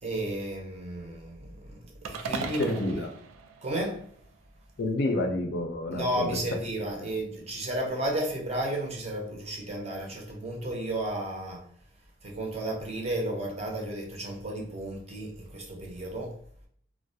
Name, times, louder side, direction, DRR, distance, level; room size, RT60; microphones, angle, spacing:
voice 1, 0.0-3.0 3.6-4.0 5.9-11.6 12.2-16.3, right 1 dB, 35° right, 0.5 m, -33 dB
sound 1, 2.0-4.4, right 5 dB, 90° right, 0.3 m, -38 dB
voice 2, 2.6-3.1 4.8-6.4 7.0-7.1, left 2 dB, 55° left, 0.4 m, -29 dB
2.3 x 2.0 x 2.6 m
head